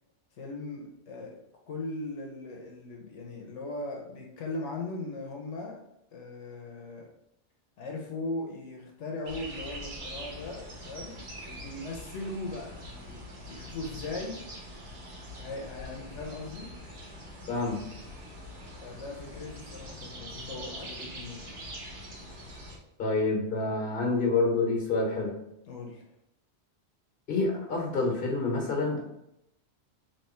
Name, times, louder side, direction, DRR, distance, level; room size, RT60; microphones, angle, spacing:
voice 1, 0.4-1.3 1.7-5.8 6.1-7.1 7.8-14.4 15.4-16.7 18.8-21.6 25.7-26.0, left 2 dB, 85° left, 0 dB, 1.1 m, -39 dB
sound 1, 9.2-22.8, equal, 80° right, 1.5 m, -43 dB
voice 2, 17.5-17.8 23.0-25.3 27.3-29.0, left 3 dB, 50° left, -1 dB, 1.3 m, -27 dB
3.3 x 3.0 x 4.3 m, 0.82 s
omnidirectional pair, 1.2 m